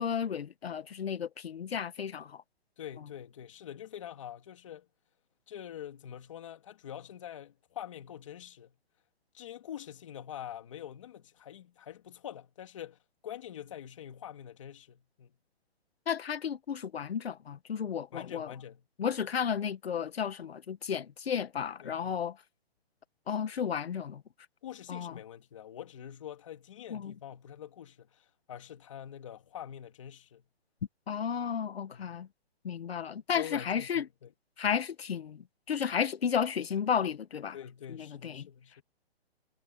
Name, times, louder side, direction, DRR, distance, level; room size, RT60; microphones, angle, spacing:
voice 1, 0.0-2.4 16.1-18.5 19.0-22.3 23.3-24.2 24.9-25.1 26.9-27.1 31.1-32.3 32.6-34.0 34.6-35.4 35.7-37.6 38.2-38.4, left 7 dB, 70° left, 1.2 m, -33 dB
voice 2, 2.8-4.9 5.5-8.8 9.3-15.4 18.1-18.9 21.8-22.1 24.6-30.4 31.9-32.2 33.3-34.3 37.5-38.8, left 10 dB, 30° left, 2.7 m, -45 dB
hypercardioid pair, 180°, 32 cm